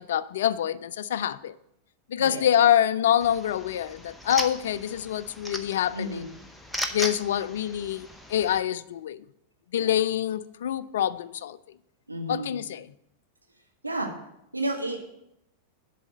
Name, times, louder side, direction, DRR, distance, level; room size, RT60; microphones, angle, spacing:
voice 1, 0.0-1.6 2.1-6.3 6.9-9.2 9.7-11.6 12.3-12.8, left 10 dB, 60° left, 0.4 m, -26 dB
voice 2, 2.2-2.5 5.9-6.3 9.8-9.9 12.1-12.6 13.8-14.1 14.5-15.0, right 1 dB, 85° right, 1.5 m, -31 dB
sound 1, 3.2-8.6, left 1 dB, 5° left, 0.8 m, -37 dB
10.5 x 4.2 x 7.6 m
figure-of-eight pair, 90°, 0 cm